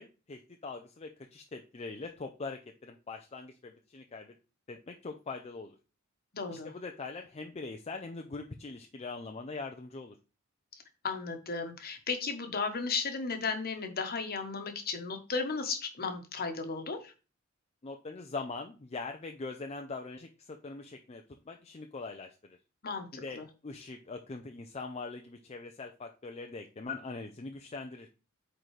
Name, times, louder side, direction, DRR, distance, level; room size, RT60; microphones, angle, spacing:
voice 1, 0.0-4.3 4.7-5.8 6.5-10.2 17.8-22.6 23.1-23.4 23.6-28.1, left 3 dB, 30° left, 4 dB, 0.5 m, -42 dB
voice 2, 6.3-6.7 11.0-17.1 22.8-23.4, left 4 dB, 45° left, 6 dB, 1.1 m, -35 dB
8.9 x 3.9 x 3.2 m, 0.33 s
head